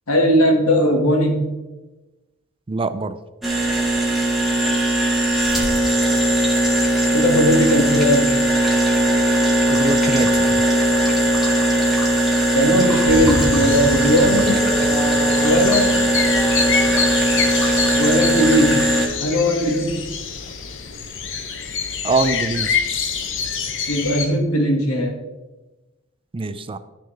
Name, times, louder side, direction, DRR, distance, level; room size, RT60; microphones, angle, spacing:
voice 1, 0.1-1.5 7.1-8.3 12.5-14.7 15.4-16.0 18.0-18.8 19.2-20.0 23.9-25.1, equal, 85° left, 2 dB, 2.0 m, -18 dB
voice 2, 2.7-3.2 9.7-10.6 22.0-22.8 26.3-26.8, right 3 dB, 25° right, 12 dB, 0.4 m, -24 dB
sound 1, 3.4-19.1, right 1 dB, ahead, 1.8 m, -19 dB
sound 2, 13.1-24.3, left 6 dB, 60° left, 0.9 m, -27 dB
sound 3, 13.1-17.5, right 1 dB, 15° left, 3.3 m, -30 dB
13.0 x 6.3 x 3.4 m, 1.1 s
head